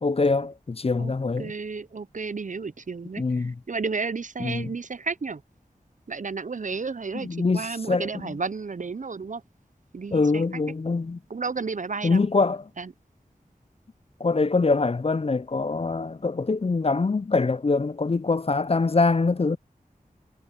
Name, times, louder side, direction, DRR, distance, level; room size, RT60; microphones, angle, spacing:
voice 1, 0.0-1.5 3.2-3.5 4.4-4.7 7.2-8.3 10.1-11.2 12.0-12.6 14.2-19.6, left 3 dB, 40° left, 0.4 m, -24 dB
voice 2, 1.0-5.4 6.1-9.4 9.9-10.6 11.3-12.3 12.8-12.9, right 4 dB, 55° right, 0.5 m, -32 dB
wide cardioid pair, 40°, 16 cm